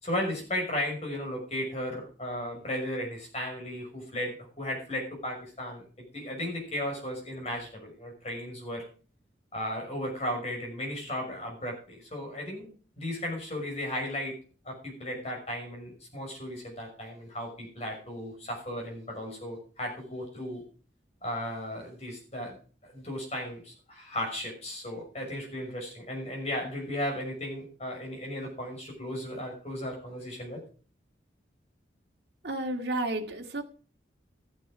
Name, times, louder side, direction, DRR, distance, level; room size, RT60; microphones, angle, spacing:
voice 1, 0.0-8.8 9.5-12.7 13.0-14.4 14.6-20.6 21.2-22.6 22.8-30.6, left 1 dB, 35° left, 0 dB, 6.1 m, -35 dB
voice 2, 32.4-33.6, right 2 dB, 60° right, 2 dB, 2.0 m, -31 dB
14.0 x 9.3 x 5.0 m, 0.39 s
head